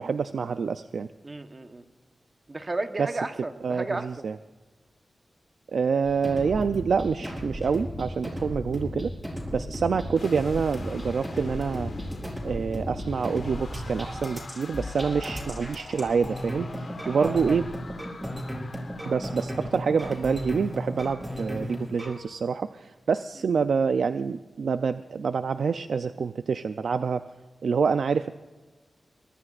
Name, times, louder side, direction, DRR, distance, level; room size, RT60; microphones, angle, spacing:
voice 1, 0.0-1.1 3.0-3.1 3.6-4.4 5.7-9.1 9.5-11.9 12.4-17.7 19.1-27.3 27.6-28.3, right 5 dB, 85° right, 10 dB, 0.4 m, -27 dB
voice 2, 1.2-1.8 2.5-4.3 8.4-8.5 9.6-9.8 15.4-15.5 17.0-17.6, right 2 dB, 35° right, 7 dB, 1.0 m, -34 dB
sound 1, 6.1-22.2, equal, 10° right, 4.5 m, -35 dB
sound 2, 10.2-22.2, left 3 dB, 55° left, 1.4 m, -45 dB
24.0 x 22.0 x 2.5 m, 1.3 s
wide cardioid pair, 115°, 0 cm